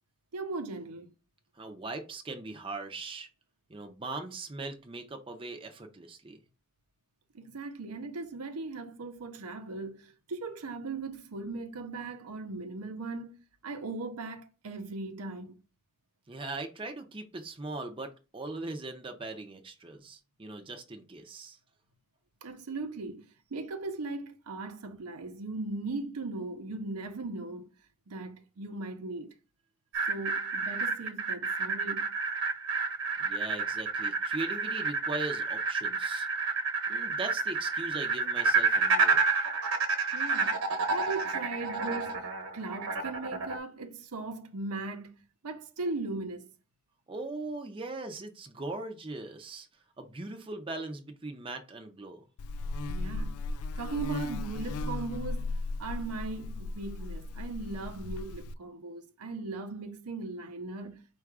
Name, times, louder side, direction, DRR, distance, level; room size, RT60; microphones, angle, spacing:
voice 1, 0.3-1.1 7.3-13.4 13.6-15.6 22.4-27.7 28.1-29.3 30.1-32.1 40.1-40.6 40.9-42.3 42.5-46.5 52.9-53.4 53.8-55.5 55.8-61.0, right 3 dB, 90° right, 0.7 m, -38 dB
voice 2, 1.6-3.3 3.7-6.4 16.3-21.6 33.2-36.3 36.9-39.2 47.1-49.7 50.0-52.2, right 2 dB, 25° right, 0.5 m, -40 dB
sound 1, 29.9-43.6, right 4 dB, 70° right, 1.1 m, -30 dB
Buzz, 52.4-58.5, left 2 dB, 80° left, 0.3 m, -36 dB
4.6 x 2.4 x 4.6 m
head